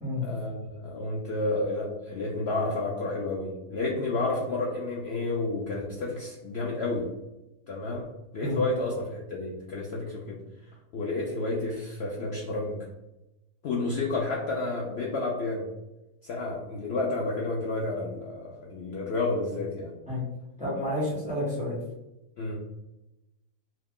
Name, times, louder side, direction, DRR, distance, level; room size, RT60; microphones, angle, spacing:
voice 1, 0.2-7.1 7.7-8.1 8.3-10.4 10.9-12.9 13.6-15.7 16.2-19.9 22.4-22.6, left 2 dB, 85° left, -3 dB, 0.5 m, -30 dB
voice 2, 20.6-21.7, left 1 dB, 5° right, -7 dB, 1.0 m, -30 dB
2.8 x 2.3 x 3.5 m, 0.96 s
omnidirectional pair, 1.7 m